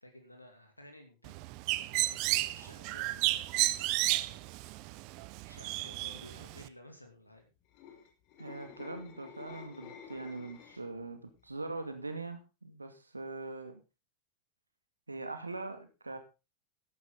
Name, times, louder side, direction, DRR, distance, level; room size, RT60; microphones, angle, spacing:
voice 1, 0.0-1.3 1.8-4.6 5.5-7.5 10.6-10.8, left 1 dB, 85° left, 5 dB, 2.6 m, -54 dB
Bird, 1.2-6.7, right 18 dB, 45° right, 0.8 m, -32 dB
sound 1, 7.6-11.0 11.4-11.7, left 7 dB, 45° left, 2.6 m, -50 dB
voice 2, 8.4-13.8 15.1-16.2, right 3 dB, 80° right, 7 dB, 2.3 m, -42 dB
13.5 x 11.5 x 3.8 m, 0.30 s
figure-of-eight pair, 90°, 0 cm